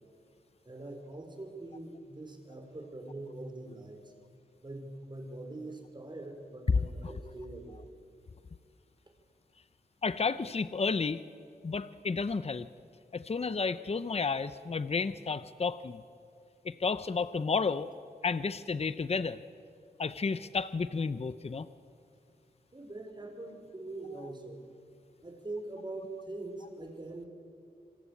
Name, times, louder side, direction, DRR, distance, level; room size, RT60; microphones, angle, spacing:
voice 1, 0.6-4.0 4.6-7.8 22.7-24.6 25.2-27.3, right 2 dB, 30° right, 4 dB, 5.1 m, -43 dB
voice 2, 10.0-11.2 11.6-12.7 13.1-16.0 16.6-17.9 18.2-19.4 20.0-21.7, left 4 dB, 40° left, 13 dB, 0.8 m, -32 dB
27.0 x 25.0 x 8.5 m, 2.3 s
wide cardioid pair, 80°, 16 cm